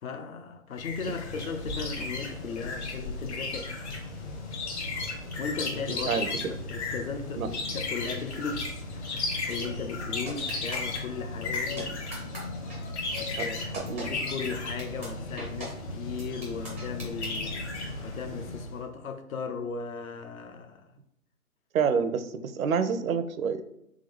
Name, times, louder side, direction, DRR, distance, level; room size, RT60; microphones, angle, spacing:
voice 1, 0.0-3.7 5.4-11.9 13.1-17.6 18.0-20.9, left 5 dB, 70° left, 0.7 m, -37 dB
sound 1, 0.8-18.8, left 3 dB, 50° left, 1.1 m, -35 dB
voice 2, 5.9-6.5 7.4-7.5 11.8-11.9 13.9-14.1 21.7-23.6, right 6 dB, 70° right, 0.6 m, -28 dB
sound 2, 10.3-11.0 11.5-11.8 12.1-12.4 12.7-12.8 13.2-13.5 13.7-14.0 14.4-14.5 14.8-15.1 15.4-15.7 16.2-17.4, right 1 dB, 10° right, 0.4 m, -39 dB
3.7 x 3.2 x 3.5 m
hypercardioid pair, 140°, 43 cm